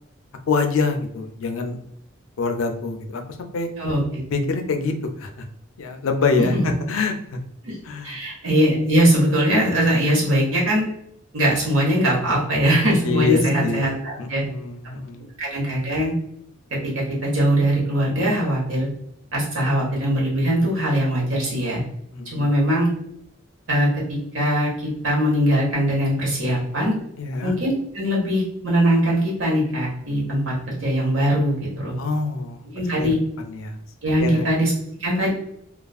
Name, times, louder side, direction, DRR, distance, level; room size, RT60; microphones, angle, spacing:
voice 1, 0.5-1.8 2.4-3.7 4.3-5.5 5.8-7.4 7.8-8.2 13.0-13.8 14.2-15.3 22.1-22.5 27.2-27.5 32.0-32.7 33.0-33.1 33.5-33.8 34.2-34.5, left 4 dB, 80° left, 5 dB, 0.4 m, -25 dB
voice 2, 8.0-10.8 11.3-14.4 15.4-16.1 16.8-18.9 19.3-21.8 22.3-22.9 23.7-26.9 27.4-32.0 32.7-33.2 34.0-34.7 35.0-35.3, equal, 80° right, -4 dB, 1.1 m, -21 dB
2.4 x 2.3 x 2.3 m, 0.71 s
head